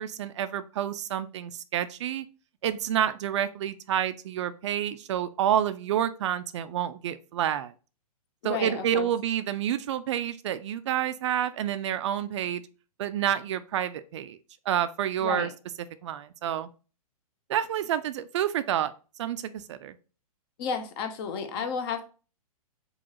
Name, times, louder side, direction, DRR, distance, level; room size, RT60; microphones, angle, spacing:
voice 1, 0.0-2.3 2.6-7.7 8.4-12.6 13.0-14.4 14.7-15.5 16.0-16.7 17.5-18.9 19.2-20.0 21.6-21.7, right 10 dB, 50° right, 0.4 m, -29 dB
voice 2, 8.4-9.1 15.2-15.5 20.6-22.1, left 6 dB, 40° left, 0.7 m, -32 dB
5.3 x 2.4 x 2.9 m
figure-of-eight pair, 115°, 19 cm